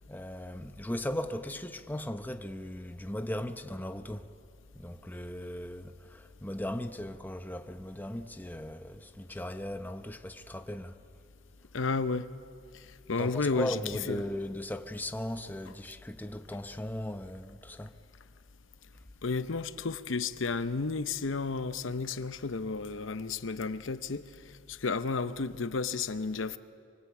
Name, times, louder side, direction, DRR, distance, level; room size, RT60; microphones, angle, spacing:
voice 1, 0.0-4.3 4.7-11.0 13.2-17.9, left 1 dB, 10° left, 0.8 m, -38 dB
voice 2, 11.7-12.3 12.7-13.8 14.1-14.2 19.2-26.6, left 4 dB, 70° left, 0.8 m, -32 dB
26.5 x 23.5 x 8.3 m
head